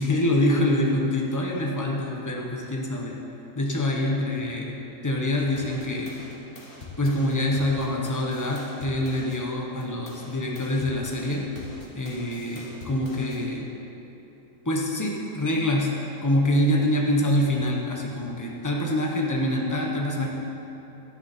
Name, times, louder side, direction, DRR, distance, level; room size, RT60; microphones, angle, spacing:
voice 1, 0.0-3.2 3.5-4.8 5.0-6.2 7.0-11.4 11.9-13.7 14.6-15.9 16.2-20.3, left 1 dB, 15° left, -1 dB, 1.1 m, -25 dB
sound 1, 5.6-9.4 9.8-13.4, left 2 dB, 35° left, 1.8 m, -44 dB
13.5 x 10.0 x 4.4 m, 3.0 s
omnidirectional pair, 1.6 m